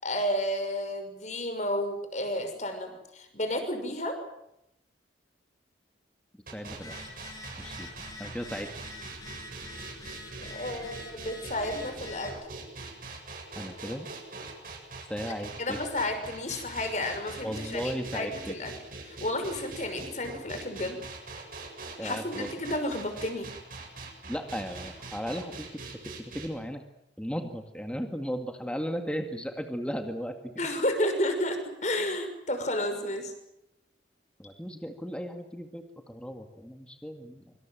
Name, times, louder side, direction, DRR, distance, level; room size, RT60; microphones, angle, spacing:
voice 1, 0.0-4.2 10.5-12.4 15.6-18.7 19.0-21.0 22.0-23.5 30.6-33.3, left 1 dB, 40° left, 7 dB, 5.8 m, -31 dB
voice 2, 6.5-6.9 7.6-7.9 8.2-8.7 13.5-14.1 15.0-15.8 17.4-18.6 22.0-22.5 24.3-25.8 26.2-26.8 27.2-30.5 34.4-37.5, equal, 5° left, 5 dB, 2.1 m, -36 dB
sound 1, 6.5-26.5, right 3 dB, 50° right, 7.4 m, -43 dB
Telephone, 6.7-12.4, left 2 dB, 20° left, 7.6 m, -46 dB
26.0 x 25.5 x 7.8 m, 0.81 s
head